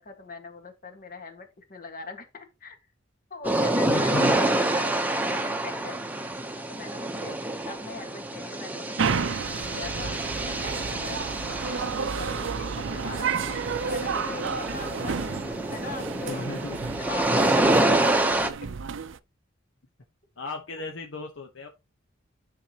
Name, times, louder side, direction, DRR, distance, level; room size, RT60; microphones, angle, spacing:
voice 1, 0.0-2.8 3.3-11.2 11.6-16.5 17.0-18.3 20.7-20.8, left 4 dB, 45° left, 1.7 m, -41 dB
sound 1, 3.4-18.5, right 1 dB, 10° right, 0.9 m, -27 dB
voice 2, 3.9-4.4 16.3-16.8 17.4-17.5 20.4-21.7, left 3 dB, 70° left, 1.0 m, -34 dB
sound 2, 9.0-19.2, right 6 dB, 65° right, 0.5 m, -31 dB
10.0 x 5.9 x 2.9 m
head